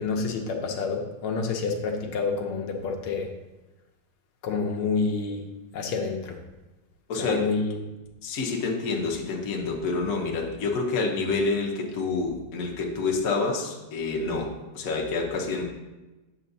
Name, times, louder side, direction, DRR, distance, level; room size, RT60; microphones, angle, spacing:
voice 1, 0.0-3.3 4.4-5.5 5.7-6.4 7.2-7.8, left 4 dB, 80° left, 2 dB, 1.6 m, -28 dB
voice 2, 7.1-7.5 8.2-15.6, left 3 dB, 50° left, 0 dB, 1.1 m, -28 dB
8.4 x 6.7 x 2.7 m, 1.1 s
omnidirectional pair, 2.3 m